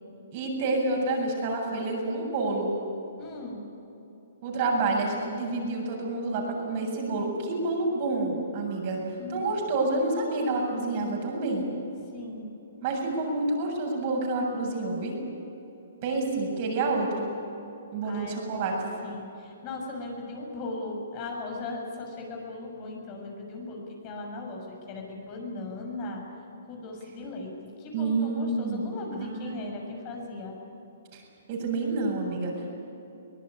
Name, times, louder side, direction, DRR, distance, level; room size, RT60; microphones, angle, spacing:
voice 1, 0.3-2.7 4.4-9.0 9.3-11.7 12.8-15.2 16.0-17.3 17.9-18.9 27.9-29.7 31.1-31.2 31.5-32.7, right 2 dB, 45° right, 0 dB, 7.7 m, -28 dB
voice 2, 3.2-3.6 9.2-9.5 12.1-12.5 18.0-26.2 26.7-30.6, left 2 dB, 35° left, 1 dB, 6.6 m, -38 dB
23.5 x 19.0 x 10.0 m, 2.9 s
hypercardioid pair, 135°, 0 cm